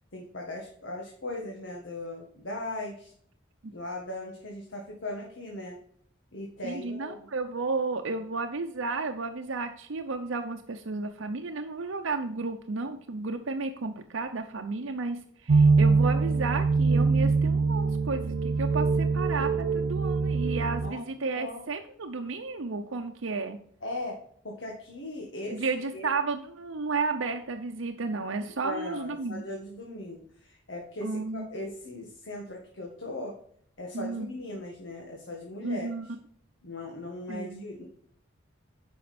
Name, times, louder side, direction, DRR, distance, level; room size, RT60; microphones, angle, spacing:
voice 1, 0.1-3.1 3.7-5.8 6.3-7.2 20.8-21.6 23.8-24.2 24.4-26.1 28.6-33.3 33.8-35.9 36.6-37.8, left 1 dB, 75° left, -1 dB, 1.7 m, -38 dB
voice 2, 6.6-23.6 25.5-29.4 31.0-31.5 33.9-34.3 35.6-36.1 37.3-37.6, right 3 dB, 90° right, 4 dB, 0.7 m, -33 dB
sound 1, 15.5-20.9, right 4 dB, 55° right, 0.4 m, -23 dB
9.3 x 5.7 x 4.3 m, 0.62 s
head